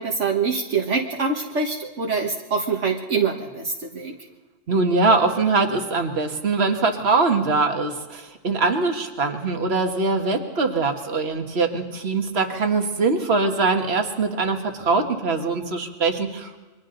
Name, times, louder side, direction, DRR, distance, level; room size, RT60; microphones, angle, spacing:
voice 1, 0.0-4.1, right 5 dB, 70° right, 0 dB, 1.8 m, -25 dB
voice 2, 4.7-16.6, right 3 dB, 55° right, 4 dB, 1.9 m, -22 dB
29.0 x 23.5 x 3.9 m, 1.2 s
omnidirectional pair, 1.3 m